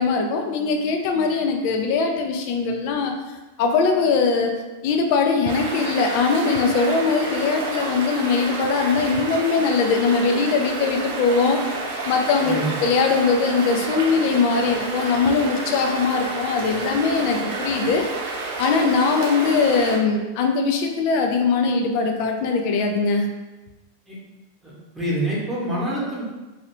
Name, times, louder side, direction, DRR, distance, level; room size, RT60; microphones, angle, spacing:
voice 1, 0.0-3.2 3.6-11.6 12.0-12.5 12.8-18.1 18.6-23.3, left 4 dB, 45° left, 4 dB, 0.4 m, -21 dB
sound 1, 5.4-20.0, right 3 dB, 55° right, 0.7 m, -30 dB
voice 2, 12.4-12.8 24.1-24.2 24.6-26.2, right 1 dB, 10° right, -6 dB, 1.0 m, -26 dB
2.9 x 2.6 x 2.9 m, 1.2 s
figure-of-eight pair, 90°, 0 cm